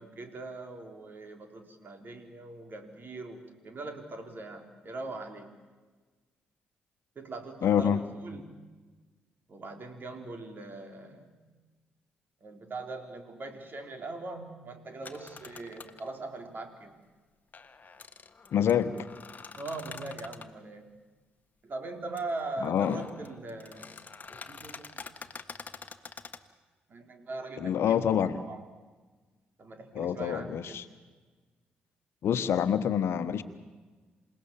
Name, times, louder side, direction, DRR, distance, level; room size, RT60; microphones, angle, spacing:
voice 1, 0.0-5.5 7.2-8.6 9.5-11.4 12.4-17.0 19.6-20.9 21.6-23.9 24.3-25.2 26.9-28.7 29.6-30.8, right 2 dB, 45° right, 5 dB, 3.7 m, -41 dB
voice 2, 7.6-8.0 18.5-18.9 22.6-23.0 27.6-28.4 29.9-30.8 32.2-33.4, left 9 dB, 60° left, 11 dB, 1.3 m, -26 dB
sound 1, 15.0-16.1 17.5-20.5 22.2-22.3 22.6-26.4, left 4 dB, 35° left, 1.6 m, -46 dB
28.0 x 18.0 x 7.3 m, 1.3 s
hypercardioid pair, 45°, 5 cm